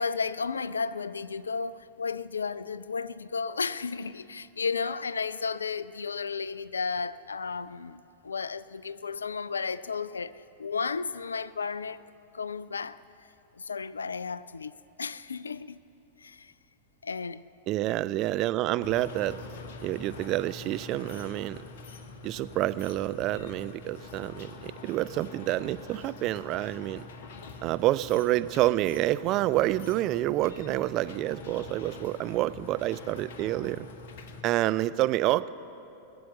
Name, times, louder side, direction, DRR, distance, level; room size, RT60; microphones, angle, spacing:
voice 1, 0.0-12.0 12.3-13.0 13.6-15.8 16.2-16.5 17.0-17.4, left 5 dB, 75° left, 0.3 m, -33 dB
voice 2, 17.7-19.4 19.8-21.6 22.2-27.0 27.6-33.9 34.4-35.5, right 15 dB, 40° right, 0.3 m, -28 dB
sound 1, 18.8-34.4, left 4 dB, 55° left, 0.9 m, -45 dB
21.0 x 7.7 x 7.2 m
figure-of-eight pair, 90°, 0 cm